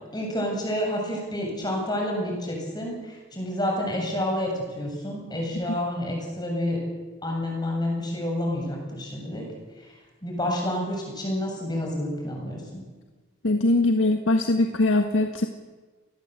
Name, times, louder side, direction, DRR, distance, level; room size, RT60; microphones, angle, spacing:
voice 1, 0.1-6.8 7.2-9.5 10.2-12.8, left 1 dB, 20° left, 1 dB, 7.7 m, -29 dB
voice 2, 13.4-15.5, left 2 dB, 85° left, 5 dB, 1.7 m, -21 dB
29.0 x 20.0 x 8.3 m, 1.3 s
head